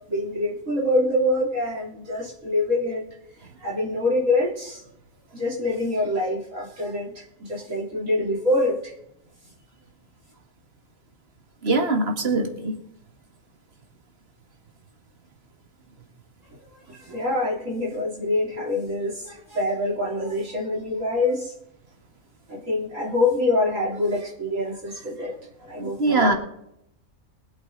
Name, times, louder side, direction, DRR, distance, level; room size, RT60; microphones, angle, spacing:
voice 1, 0.1-3.1 3.6-4.8 5.3-8.9 16.9-21.5 22.5-25.3 25.6-26.4, left 1 dB, 70° right, -5 dB, 3.9 m, -25 dB
voice 2, 11.6-12.8 26.0-26.3, right 2 dB, 50° right, 3 dB, 2.2 m, -22 dB
23.0 x 8.1 x 4.0 m, 0.76 s
omnidirectional pair, 1.4 m